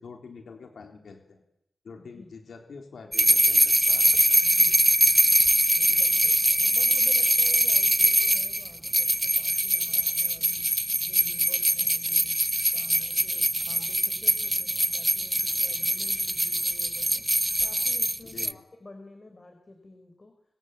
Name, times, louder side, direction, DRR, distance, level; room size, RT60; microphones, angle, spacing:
voice 1, 0.0-1.4 1.8-4.4 18.3-18.6, left 5 dB, 90° left, 4 dB, 3.7 m, -46 dB
voice 2, 2.0-2.3 4.4-10.7 11.0-12.4 12.7-17.3 17.6-20.4, left 2 dB, 40° left, 5 dB, 4.5 m, -50 dB
sound 1, 3.1-18.5, right 1 dB, 10° right, 0.9 m, -23 dB
26.0 x 22.5 x 8.3 m, 0.81 s
cardioid pair, 50°, 0 cm